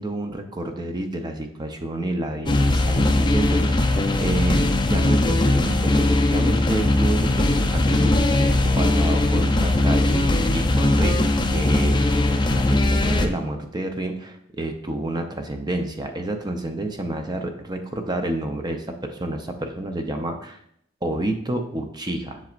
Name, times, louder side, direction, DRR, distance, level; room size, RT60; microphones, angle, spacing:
voice 1, 0.0-20.6 21.0-22.4, right 1 dB, 20° right, 5 dB, 0.7 m, -29 dB
sound 1, 2.5-13.3, left 2 dB, 25° left, 0.5 m, -20 dB
7.4 x 7.0 x 2.5 m, 0.72 s
head